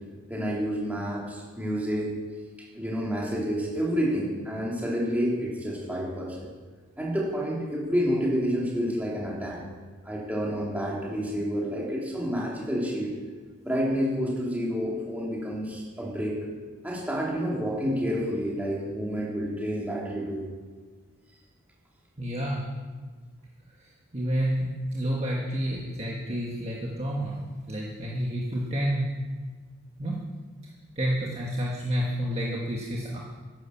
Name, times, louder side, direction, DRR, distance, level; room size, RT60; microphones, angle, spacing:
voice 1, 0.3-2.1 2.7-6.5 7.0-9.6 10.0-13.1 13.6-16.3 16.8-20.4, equal, 5° right, -4 dB, 3.2 m, -29 dB
voice 2, 22.2-22.7 24.1-27.4 27.7-29.1 30.0-30.2 30.9-33.2, equal, 30° right, -3 dB, 1.5 m, -29 dB
11.5 x 11.0 x 7.2 m, 1.5 s
head